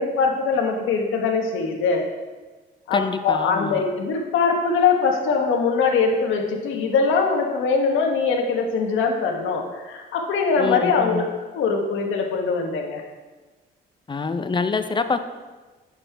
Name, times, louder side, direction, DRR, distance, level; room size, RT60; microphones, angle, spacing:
voice 1, 0.0-2.0 2.9-11.2 11.5-13.0, left 5 dB, 85° left, 2 dB, 1.2 m, -22 dB
voice 2, 2.9-3.8 10.6-11.3 14.1-15.2, left 4 dB, 25° left, 10 dB, 0.5 m, -25 dB
9.0 x 6.1 x 3.4 m, 1.3 s
cardioid pair, 90°, 20 cm